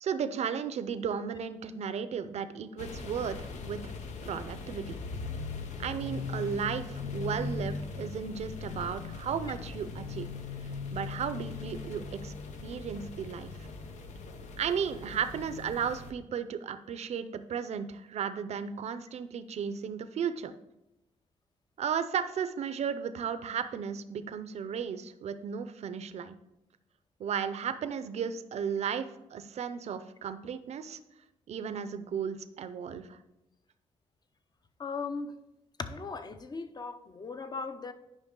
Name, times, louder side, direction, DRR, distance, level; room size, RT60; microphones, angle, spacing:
voice 1, 0.0-3.9 4.2-5.0 5.8-10.3 10.9-12.3 12.6-13.7 14.6-20.5 21.8-26.4 27.2-31.0 31.5-33.2, right 7 dB, 65° right, 12 dB, 0.6 m, -34 dB
sound 1, 2.8-16.1, left 4 dB, 90° left, 0.8 m, -39 dB
voice 2, 34.8-35.3 35.8-37.9, left 4 dB, 35° left, 10 dB, 0.7 m, -38 dB
9.9 x 5.4 x 3.7 m, 0.90 s
cardioid pair, 95°, 12 cm